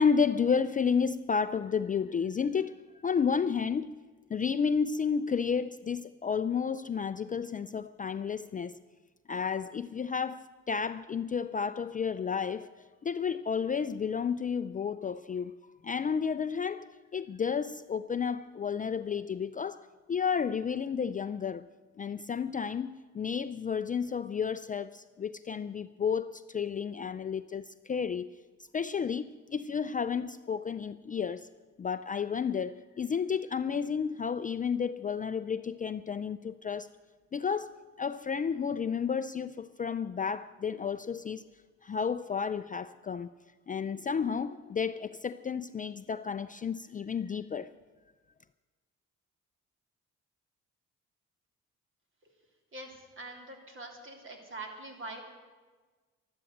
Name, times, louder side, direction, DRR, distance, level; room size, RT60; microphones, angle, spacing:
voice 1, 0.0-2.8 3.0-3.9 4.3-8.8 9.3-12.7 13.0-15.6 15.8-21.7 22.0-28.3 28.7-31.5 31.8-36.9 37.3-41.4 41.8-43.3 43.7-47.7, left 6 dB, 25° left, 0.4 m, -31 dB
voice 2, 52.7-55.2, right 2 dB, 40° right, 3.5 m, -44 dB
13.0 x 12.0 x 7.8 m
cardioid pair, 90°, 30 cm